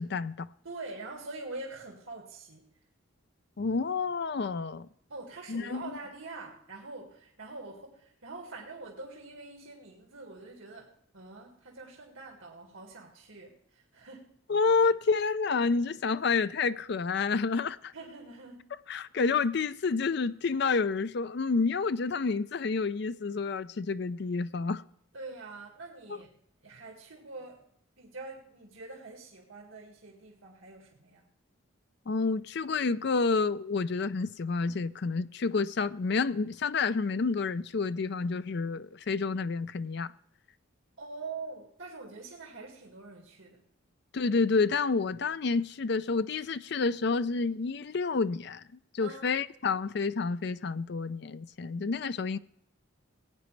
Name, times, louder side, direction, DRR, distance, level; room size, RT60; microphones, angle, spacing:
voice 1, 0.0-0.5 3.6-4.9 5.5-5.8 14.5-17.9 18.9-24.8 26.1-26.2 32.1-40.1 44.1-48.6 48.9-52.4, left 4 dB, 55° left, 0.4 m, -29 dB
voice 2, 0.6-2.7 5.1-14.3 17.9-18.7 25.1-26.4 26.6-27.6 28.0-31.2 41.0-43.6 49.0-49.3, right 3 dB, 80° right, 2.0 m, -44 dB
19.0 x 9.2 x 3.3 m
head